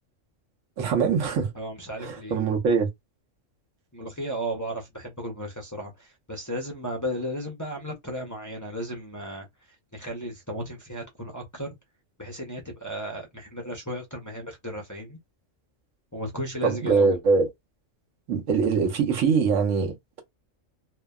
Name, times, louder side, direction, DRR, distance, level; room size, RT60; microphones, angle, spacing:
voice 1, 0.8-1.5 2.0-2.9 16.6-17.5 18.3-20.2, right 5 dB, 85° right, 1.1 m, -23 dB
voice 2, 1.5-2.5 3.9-9.5 9.9-11.7 12.2-15.2 16.1-17.2, equal, 30° left, 0.3 m, -34 dB
2.7 x 2.2 x 2.2 m
omnidirectional pair, 1.3 m